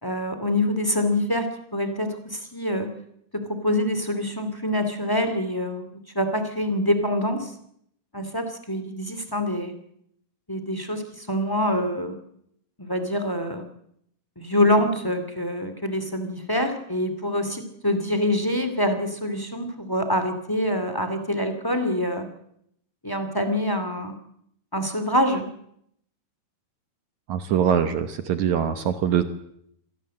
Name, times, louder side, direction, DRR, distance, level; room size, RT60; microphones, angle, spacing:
voice 1, 0.0-2.9 3.3-5.8 6.1-7.5 8.1-9.7 10.5-12.2 12.8-13.6 14.3-22.3 23.0-24.1 24.7-25.5, left 1 dB, 10° left, 8 dB, 0.9 m, -25 dB
voice 2, 27.3-29.2, right 8 dB, 70° right, 10 dB, 1.9 m, -23 dB
26.0 x 18.0 x 7.7 m, 0.71 s
omnidirectional pair, 4.7 m